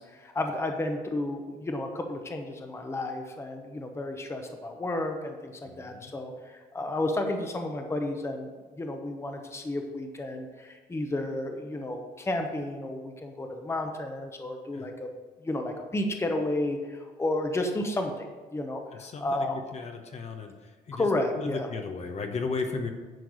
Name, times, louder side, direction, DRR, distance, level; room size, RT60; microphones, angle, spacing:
voice 1, 0.0-8.5 8.8-15.1 15.4-19.7 20.9-21.7, left 1 dB, 15° left, 4 dB, 1.0 m, -32 dB
voice 2, 5.7-6.1 14.7-14.9 19.0-19.5 19.7-20.5 20.9-21.0 21.4-22.9, left 4 dB, 40° left, 4 dB, 1.0 m, -34 dB
10.5 x 4.6 x 6.5 m, 1.3 s
cardioid pair, 110°, 17 cm